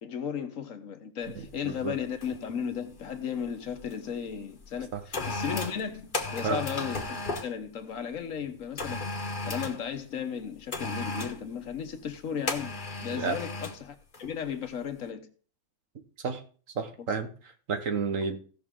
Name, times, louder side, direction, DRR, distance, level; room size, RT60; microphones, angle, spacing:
voice 1, 0.0-15.3, left 7 dB, 65° left, 1.4 m, -35 dB
voice 2, 1.3-1.9 4.9-5.0 6.4-6.6 13.1-13.4 16.2-16.4 16.7-18.4, right 5 dB, 65° right, 1.6 m, -31 dB
sound 1, 1.4-1.5 2.2-2.5 2.7-3.9 4.6-7.5 8.8-9.8 10.7-11.4 12.5-13.8 14.1-14.4, left 3 dB, 35° left, 1.3 m, -35 dB
16.5 x 6.2 x 3.7 m
omnidirectional pair, 1.5 m